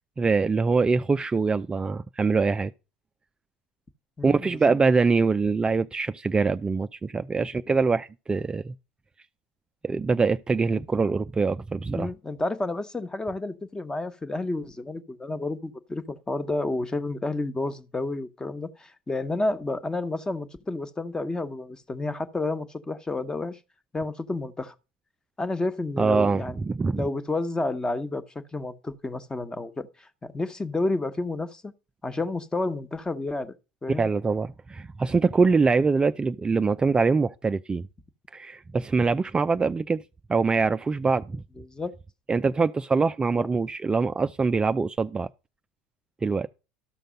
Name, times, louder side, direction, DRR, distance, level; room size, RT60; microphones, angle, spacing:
voice 1, 0.2-2.7 4.2-8.7 9.8-12.1 26.0-27.1 34.0-37.8 38.3-40.0 40.3-41.4 42.3-45.3 46.2-46.5, right 4 dB, 20° right, 0.5 m, -24 dB
voice 2, 4.2-4.8 11.9-23.6 23.9-24.7 25.4-26.6 26.9-31.7 32.0-33.5 33.8-34.1 41.6-41.9 43.3-43.5, left 2 dB, 15° left, 1.2 m, -30 dB
13.0 x 6.5 x 5.2 m
hypercardioid pair, 75°, 5 cm